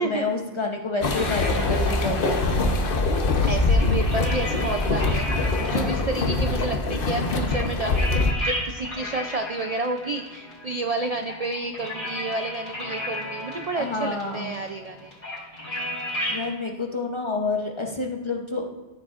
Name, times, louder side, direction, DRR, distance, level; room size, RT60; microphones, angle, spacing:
voice 1, 0.0-2.5 5.6-6.0 13.7-14.5 16.3-18.6, left 3 dB, 30° left, 2 dB, 0.7 m, -29 dB
sound 1, 1.0-8.3, left 3 dB, 55° left, 1.0 m, -23 dB
sound 2, 1.1-16.5, left 1 dB, 90° left, 3.7 m, -35 dB
voice 2, 3.5-15.1, right 2 dB, 50° right, 6 dB, 0.4 m, -30 dB
14.0 x 6.8 x 2.4 m, 1.2 s
omnidirectional pair, 1.2 m